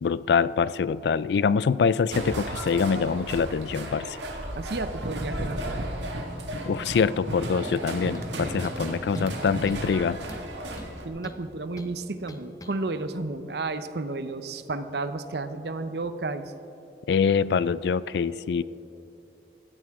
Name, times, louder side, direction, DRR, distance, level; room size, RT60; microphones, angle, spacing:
voice 1, 0.0-4.2 6.7-10.2 17.1-18.6, left 6 dB, 70° left, 18 dB, 0.3 m, -24 dB
sound 1, 2.1-11.1, right 1 dB, 85° right, 1.8 m, -34 dB
voice 2, 4.5-5.9 11.0-16.5, right 3 dB, 65° right, 10 dB, 0.7 m, -32 dB
sound 2, 7.6-7.9 8.1-8.9 9.1-9.4 9.7-9.9 10.3-11.4 11.8-11.9 12.3-12.8, left 1 dB, 20° left, 0.6 m, -43 dB
18.0 x 14.0 x 3.6 m, 2.9 s
head